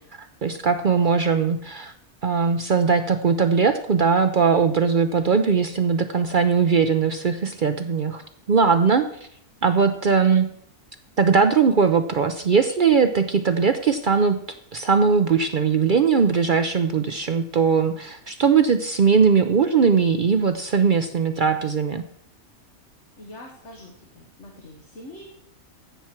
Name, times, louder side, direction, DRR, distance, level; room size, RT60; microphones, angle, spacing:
voice 1, 0.1-1.9 2.2-8.2 8.5-9.1 9.6-10.5 11.2-14.4 14.7-22.0, right 5 dB, 55° right, 8 dB, 0.5 m, -20 dB
voice 2, 23.2-25.3, left 1 dB, 55° left, 1 dB, 1.7 m, -43 dB
15.0 x 5.9 x 4.4 m, 0.70 s
omnidirectional pair, 1.5 m